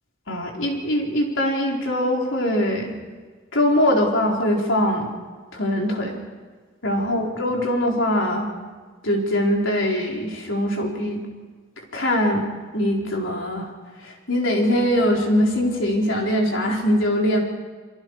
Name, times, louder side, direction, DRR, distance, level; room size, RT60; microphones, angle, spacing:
voice 1, 0.3-2.9 3.5-5.1 5.5-6.2 6.8-8.5 9.0-11.2 11.9-12.4 12.7-13.7 14.0-17.4, equal, 70° left, -1 dB, 4.5 m, -22 dB
29.0 x 22.5 x 4.9 m, 1.5 s
head